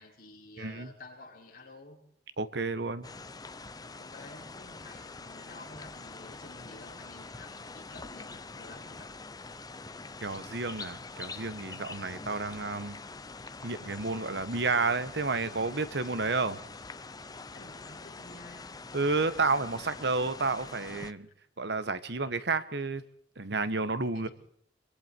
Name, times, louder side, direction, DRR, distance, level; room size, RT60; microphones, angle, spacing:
voice 1, 0.0-2.0 3.9-9.1 17.5-18.7 21.3-21.4 24.1-24.3, left 2 dB, 55° left, -1 dB, 5.9 m, -51 dB
voice 2, 0.6-0.9 2.4-3.1 10.2-13.0 13.6-16.6 18.9-21.3 21.6-23.0 23.4-24.3, right 3 dB, 70° right, 12 dB, 1.3 m, -31 dB
sound 1, 3.0-21.1, left 3 dB, 20° left, 0.8 m, -45 dB
25.5 x 23.5 x 4.6 m, 0.68 s
head